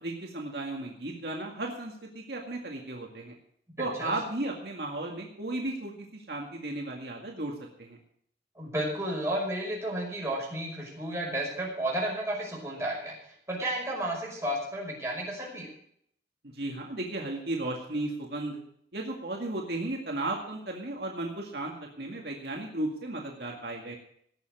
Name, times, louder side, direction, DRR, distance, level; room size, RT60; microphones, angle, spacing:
voice 1, 0.0-3.3 3.8-7.5 7.8-8.0 16.4-18.6 18.9-24.0, right 2 dB, 65° right, 0 dB, 2.0 m, -35 dB
voice 2, 3.8-4.1 8.6-15.7, right 1 dB, 15° right, -2 dB, 5.4 m, -32 dB
18.0 x 7.1 x 6.5 m, 0.67 s
head